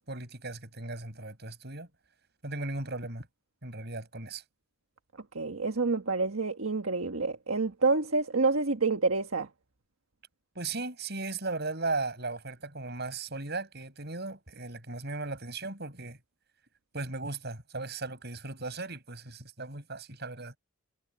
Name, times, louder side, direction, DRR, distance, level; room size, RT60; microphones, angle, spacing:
voice 1, 0.0-1.9 2.4-3.3 3.6-4.4 10.5-16.2 16.9-20.5, right 3 dB, 50° right, 7.7 m, -37 dB
voice 2, 5.3-9.5, right 3 dB, 75° right, 1.5 m, -28 dB
head